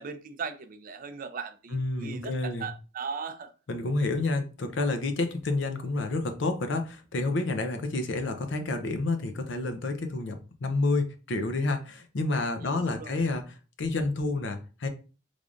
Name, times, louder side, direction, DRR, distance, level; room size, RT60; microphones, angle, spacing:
voice 1, 0.0-3.5 12.6-13.2, right 5 dB, 45° right, 0.4 m, -38 dB
voice 2, 1.7-2.7 3.7-13.4 13.8-14.9, left 2 dB, 65° left, 0.6 m, -29 dB
3.6 x 3.3 x 2.5 m
head